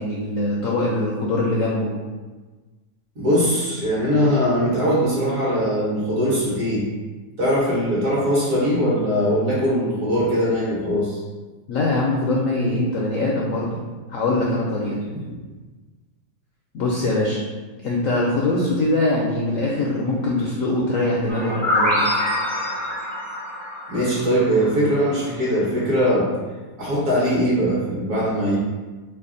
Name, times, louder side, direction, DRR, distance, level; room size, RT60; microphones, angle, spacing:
voice 1, 0.0-1.9 11.7-13.8 14.1-14.9 16.7-17.4 17.8-22.2, left 2 dB, 70° left, -3 dB, 0.7 m, -22 dB
voice 2, 3.1-6.8 7.4-11.2 15.1-15.2 23.9-26.3 26.8-28.6, equal, 55° right, -7 dB, 1.5 m, -21 dB
sound 1, 21.3-25.0, left 1 dB, ahead, 0.4 m, -25 dB
3.3 x 2.4 x 3.7 m, 1.3 s
omnidirectional pair, 1.8 m